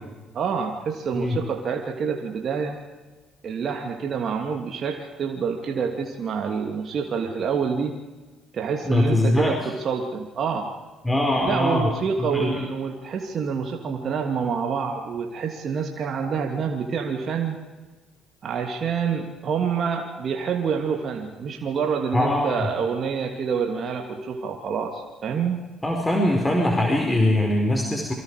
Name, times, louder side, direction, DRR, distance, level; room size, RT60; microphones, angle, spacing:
voice 1, 0.3-2.8 3.4-8.0 8.5-10.7 11.5-17.6 18.4-25.6, right 6 dB, 50° right, 3 dB, 2.7 m, -27 dB
voice 2, 8.8-9.6 11.0-11.9 12.2-12.6 22.1-22.7 25.8-28.1, left 1 dB, 15° left, 1 dB, 4.8 m, -22 dB
28.0 x 25.0 x 4.9 m, 1.3 s
hypercardioid pair, 50°, 0 cm